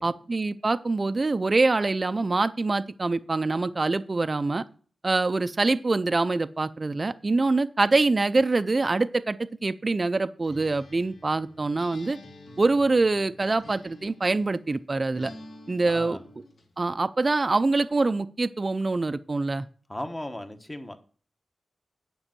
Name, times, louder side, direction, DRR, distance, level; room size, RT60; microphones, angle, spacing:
voice 1, 0.0-4.6 5.0-12.2 12.6-15.3 15.7-16.2 16.8-19.7, right 3 dB, 30° right, 11 dB, 0.4 m, -25 dB
Acoustic guitar, 10.4-14.5 15.1-16.7, left 2 dB, 70° left, 2.4 m, -48 dB
voice 2, 15.9-16.2 19.9-21.0, left 1 dB, 20° left, 8 dB, 1.0 m, -36 dB
9.9 x 5.4 x 7.5 m, 0.42 s
wide cardioid pair, 145°, 0 cm